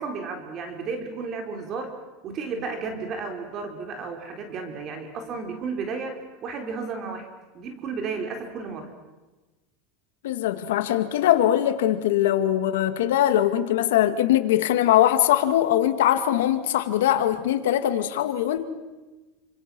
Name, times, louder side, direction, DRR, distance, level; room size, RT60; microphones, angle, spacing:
voice 1, 0.0-1.9 2.2-7.3 7.5-8.9, right 4 dB, 40° right, 3.8 m, -33 dB
voice 2, 10.2-18.6, left 12 dB, 90° left, 2.2 m, -21 dB
28.5 x 26.5 x 6.3 m
supercardioid pair, 140°, 0 cm